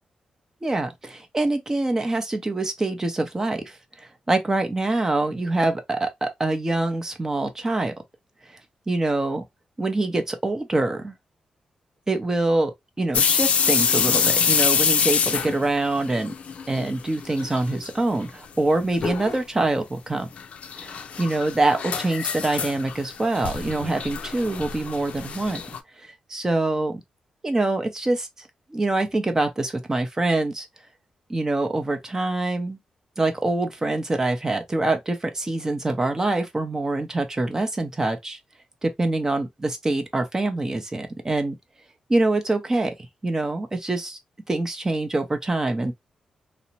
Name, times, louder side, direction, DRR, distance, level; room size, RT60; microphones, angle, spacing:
voice 1, 0.6-3.8 4.3-7.9 8.9-9.4 9.8-11.1 12.1-16.3 16.7-20.3 20.8-25.6 26.0-27.0 27.4-28.3 28.7-30.7 31.3-32.8 33.2-38.4 38.8-41.5 42.1-42.9 43.2-44.2 44.5-45.9, right 2 dB, 25° right, 0.7 m, -25 dB
sound 1, 13.1-17.0 17.2-17.9 18.2-18.3 19.0-19.4 20.4-25.8, left 6 dB, 65° left, 0.4 m, -25 dB
2.8 x 2.0 x 2.7 m
cardioid pair, 85°, 2 cm